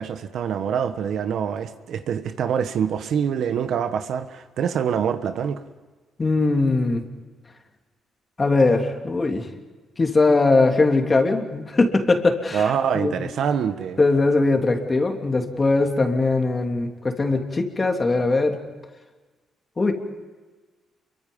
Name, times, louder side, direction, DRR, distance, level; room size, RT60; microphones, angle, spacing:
voice 1, 0.0-5.6 12.5-14.0, right 7 dB, 70° right, 10 dB, 1.3 m, -25 dB
voice 2, 6.2-7.0 8.4-9.4 10.0-12.6 12.9-13.1 14.0-18.6 19.8-19.9, left 3 dB, 30° left, 4 dB, 2.9 m, -20 dB
28.0 x 23.5 x 5.5 m, 1.3 s
cardioid pair, 90°, 0 cm